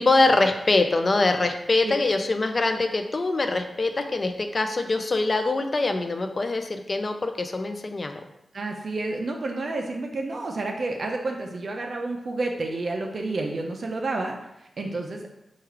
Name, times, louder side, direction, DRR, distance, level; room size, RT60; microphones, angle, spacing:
voice 1, 0.0-8.2, left 2 dB, 45° left, 6 dB, 0.4 m, -23 dB
voice 2, 8.5-15.3, right 2 dB, 60° right, 1 dB, 0.4 m, -30 dB
4.6 x 2.3 x 3.1 m, 0.86 s
wide cardioid pair, 75°, 0 cm